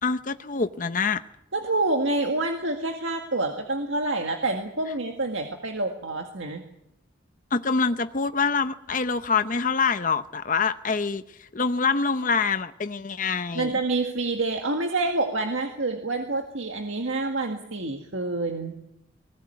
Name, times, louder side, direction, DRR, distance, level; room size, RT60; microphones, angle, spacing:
voice 1, 0.0-1.2 7.5-11.2 11.5-13.7, left 5 dB, 40° left, 0.8 m, -25 dB
voice 2, 1.5-6.6 13.5-18.8, right 2 dB, 70° right, 1.9 m, -27 dB
20.0 x 17.5 x 9.4 m
head